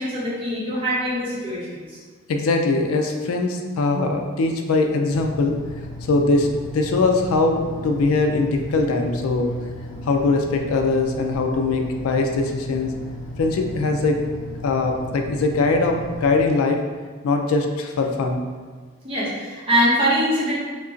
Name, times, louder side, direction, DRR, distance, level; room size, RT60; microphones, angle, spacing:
voice 1, 0.0-1.8 19.0-20.5, equal, 25° right, -8 dB, 0.9 m, -22 dB
voice 2, 2.3-5.6 6.0-9.5 10.0-12.9 13.4-16.8 17.2-18.4, left 3 dB, 70° left, 3 dB, 0.3 m, -21 dB
sound 1, 5.1-16.4, left 1 dB, 40° left, 1.2 m, -35 dB
3.6 x 2.8 x 2.5 m, 1.5 s
head